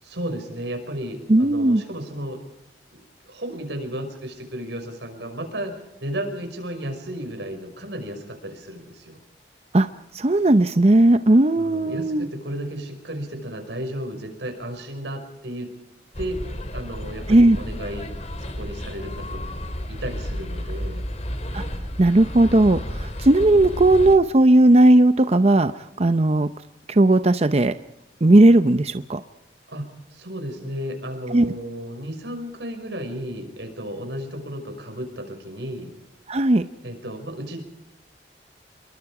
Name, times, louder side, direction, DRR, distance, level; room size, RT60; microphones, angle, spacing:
voice 1, 0.0-2.4 2.9-5.7 6.0-9.2 11.5-15.7 16.2-16.4 16.7-18.1 18.4-19.5 19.9-21.0 29.7-35.9 36.8-37.6, equal, 85° right, 6 dB, 5.6 m, -33 dB
voice 2, 1.3-1.8 9.7-9.9 10.1-12.3 17.3-17.6 21.5-21.6 22.0-26.5 26.9-27.8 28.2-29.2 31.3-31.5 36.3-36.6, right 1 dB, 35° right, 11 dB, 0.7 m, -16 dB
sound 1, 16.1-24.2, equal, 40° left, 2.8 m, -32 dB
27.0 x 22.5 x 4.9 m, 0.86 s
head